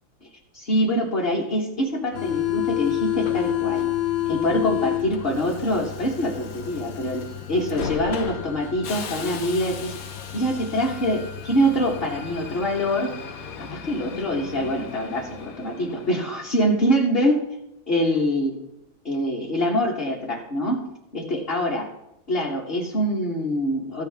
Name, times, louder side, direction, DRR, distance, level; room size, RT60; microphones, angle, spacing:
voice 1, 0.5-3.9 4.3-9.9 10.3-13.1 13.6-17.4 17.9-18.6 19.0-20.8 21.1-21.9 22.3-24.0, equal, 35° left, -3 dB, 1.2 m, -24 dB
Subway metro underground, 2.1-16.5, left 12 dB, 60° left, 1.0 m, -30 dB
14.5 x 8.3 x 3.4 m, 0.84 s
omnidirectional pair, 2.1 m